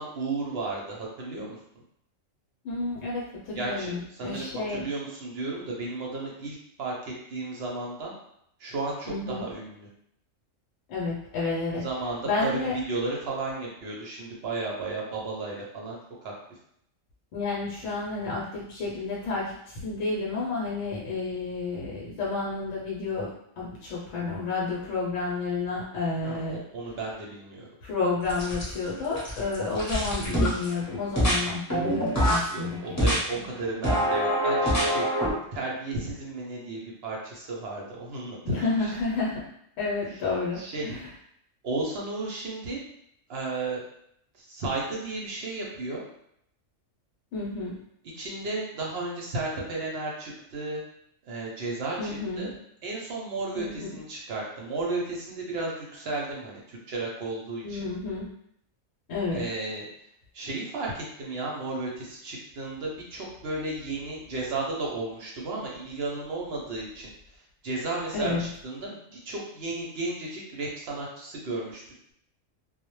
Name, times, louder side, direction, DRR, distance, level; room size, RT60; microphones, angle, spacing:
voice 1, 0.0-1.6 3.5-8.1 8.6-9.9 11.8-12.5 12.9-16.3 26.2-27.7 32.5-35.1 35.5-38.9 40.6-40.9 41.6-42.8 43.3-43.8 44.4-46.0 48.2-50.8 51.3-52.5 52.8-57.8 59.3-59.9 60.3-67.1 67.6-71.8, right 2 dB, 65° right, -3 dB, 0.7 m, -34 dB
voice 2, 2.6-4.8 9.1-9.4 10.9-11.9 12.2-12.7 17.3-26.6 27.8-33.0 33.4-33.5 38.5-39.5 39.8-41.1 47.3-47.7 52.0-52.6 53.5-53.9 57.6-58.3 59.1-59.5 68.1-68.5, left 3 dB, 75° left, -5 dB, 0.9 m, -30 dB
sound 1, 28.3-28.9 29.1-30.7 31.2-31.4 31.7-32.5 33.0-33.2 33.8-35.3, equal, 15° left, 0.6 m, -24 dB
2.1 x 2.0 x 3.0 m, 0.73 s
omnidirectional pair, 1.3 m